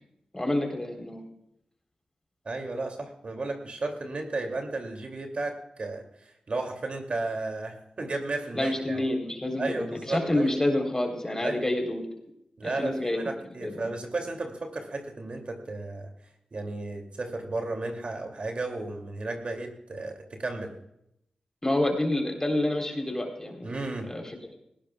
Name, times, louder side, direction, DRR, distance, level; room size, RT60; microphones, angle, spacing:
voice 1, 0.3-1.3 8.5-12.1 12.6-13.2 13.6-13.9 21.6-23.7 24.0-24.4, left 1 dB, 20° left, 3 dB, 3.8 m, -28 dB
voice 2, 2.4-9.0 9.6-10.5 11.4-11.6 12.6-16.1 16.5-20.7 23.6-24.1, right 2 dB, 55° right, 3 dB, 2.6 m, -34 dB
18.5 x 16.0 x 2.4 m, 0.78 s
cardioid pair, 45°, 2 cm